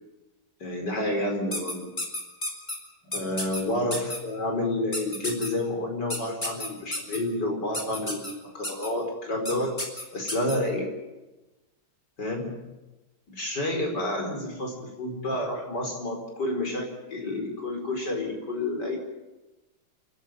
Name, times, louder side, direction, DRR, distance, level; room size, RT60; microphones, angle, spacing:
voice 1, 0.6-1.9 3.0-9.8 10.1-10.9 12.2-12.6 13.3-19.0, left 1 dB, 55° left, 2 dB, 5.4 m, -29 dB
sound 1, 1.5-2.8 3.1-3.6 3.9-4.2 4.9-5.5 6.1-7.2 7.7-8.3 8.6-8.9 9.5-9.6 9.8-10.6, left 1 dB, 20° left, 4.0 m, -31 dB
29.5 x 12.0 x 9.3 m, 1.1 s
omnidirectional pair, 2.3 m